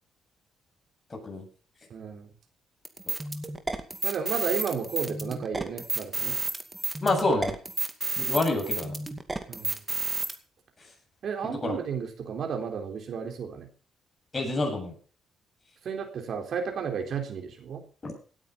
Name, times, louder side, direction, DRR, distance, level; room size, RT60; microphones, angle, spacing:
voice 1, 1.1-1.4 3.1-3.2 7.0-7.5 8.2-9.0 11.6-11.8 14.3-14.9 18.0-18.1, left 2 dB, 30° left, 2 dB, 7.7 m, -27 dB
voice 2, 1.9-2.3 4.0-6.4 9.5-9.8 11.2-13.7 15.8-17.8, right 6 dB, 60° right, 4 dB, 3.8 m, -33 dB
sound 1, 2.8-10.3, right 3 dB, 20° right, 2.2 m, -31 dB
17.0 x 9.2 x 5.4 m, 0.40 s
cardioid pair, 90°, 0 cm